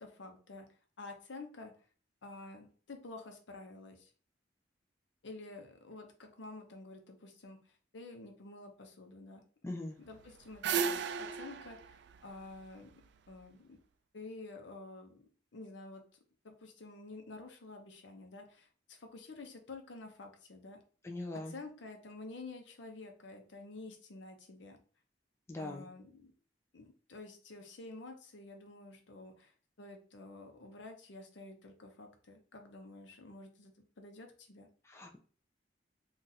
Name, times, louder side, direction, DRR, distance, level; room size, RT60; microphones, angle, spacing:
voice 1, 0.0-1.7 2.2-4.1 5.2-9.4 10.0-12.9 13.3-13.8 14.1-15.2 15.5-16.0 16.4-20.8 21.3-24.8 25.6-26.3 26.7-34.7, left 2 dB, 80° left, 4 dB, 0.7 m, -50 dB
voice 2, 9.6-10.0 21.0-21.5 25.5-25.9 34.9-35.2, left 2 dB, 15° left, 2 dB, 0.4 m, -41 dB
sound 1, 10.1-13.3, right 6 dB, 65° right, 0.3 m, -36 dB
2.7 x 2.4 x 3.9 m, 0.41 s
head